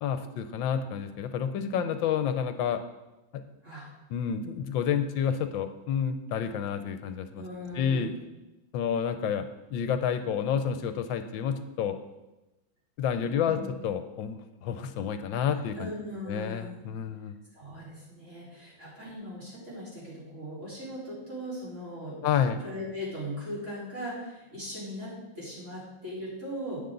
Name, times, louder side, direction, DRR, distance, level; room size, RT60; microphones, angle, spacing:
voice 1, 0.0-2.8 4.1-7.4 7.7-8.1 8.7-12.0 13.0-15.9 16.3-17.4 22.2-22.6, left 8 dB, 75° left, 9 dB, 1.5 m, -29 dB
voice 2, 7.4-8.2 13.2-13.7 15.7-16.8 17.5-22.3 22.6-26.8, equal, 35° right, -8 dB, 4.7 m, -39 dB
12.5 x 9.3 x 3.9 m, 1.0 s
omnidirectional pair, 2.2 m